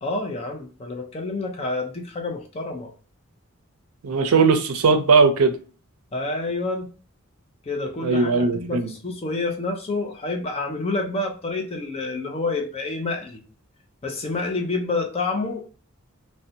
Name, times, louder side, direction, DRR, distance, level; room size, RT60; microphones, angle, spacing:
voice 1, 0.0-2.9 6.1-6.9 7.6-13.4 14.0-15.7, left 3 dB, 30° left, 0.5 m, -28 dB
voice 2, 4.0-5.6 8.0-8.9, right 4 dB, 80° right, 0.5 m, -18 dB
2.5 x 2.1 x 2.6 m
head